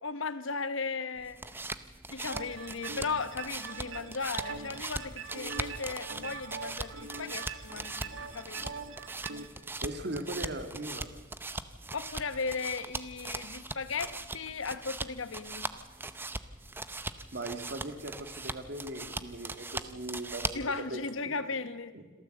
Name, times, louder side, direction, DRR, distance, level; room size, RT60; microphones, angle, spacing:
voice 1, 0.0-1.4 2.1-8.7 11.9-15.7 20.5-21.9, left 4 dB, 70° left, 13 dB, 1.0 m, -36 dB
sound 1, 1.2-20.8, right 2 dB, 10° right, 0.7 m, -40 dB
sound 2, 2.3-9.5, right 5 dB, 75° right, 1.5 m, -43 dB
voice 2, 9.8-11.1 17.3-21.0 21.9-22.0, right 1 dB, 55° right, 7 dB, 2.0 m, -39 dB
26.5 x 13.5 x 7.8 m, 1.4 s
head